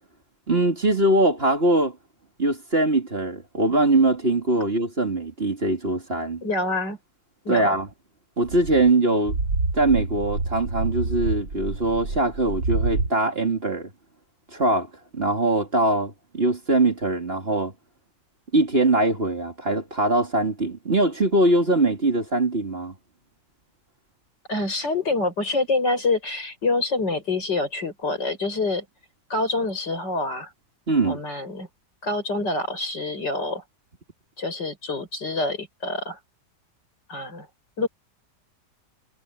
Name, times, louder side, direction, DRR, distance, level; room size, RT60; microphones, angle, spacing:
voice 1, 0.5-2.0 2.4-6.4 7.5-7.9 8.4-9.4 9.7-13.9 14.5-17.7 18.5-22.9 30.9-31.2, right 2 dB, 35° right, 2.9 m, -22 dB
voice 2, 6.4-7.0 7.4-7.8 24.5-28.8 29.3-30.5 31.0-31.7 32.0-33.6 34.4-36.2 37.1-37.5 37.8-37.9, left 3 dB, 85° left, 8.0 m, -26 dB
sound 1, 8.4-13.1, right 3 dB, 85° right, 4.7 m, -27 dB
omnidirectional pair, 1.8 m